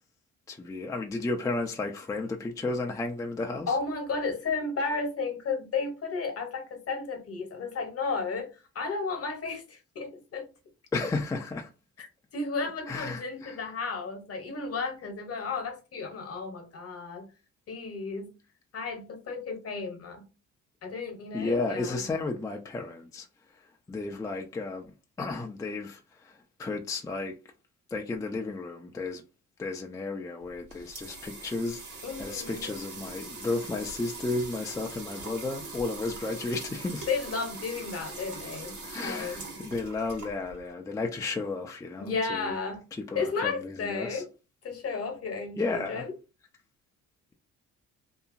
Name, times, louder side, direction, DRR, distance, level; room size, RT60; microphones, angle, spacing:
voice 1, 0.5-3.8 10.9-11.7 12.9-13.6 21.3-23.3 23.6-24.9 25.2-27.4 27.9-29.2 29.6-31.8 32.2-37.1 38.8-42.6 43.0-44.2 45.5-46.1, left 3 dB, 10° left, 0.4 m, -33 dB
voice 2, 3.7-8.5 8.7-10.5 12.0-12.1 12.3-17.3 17.7-18.4 18.7-20.3 20.8-22.0 32.0-32.8 37.1-39.5 42.0-42.9 43.1-44.3 44.6-46.1, left 4 dB, 50° left, 1.0 m, -33 dB
sound 1, 30.4-40.7, right 3 dB, 80° right, 1.5 m, -42 dB
2.8 x 2.3 x 2.5 m
cardioid pair, 90°, 30 cm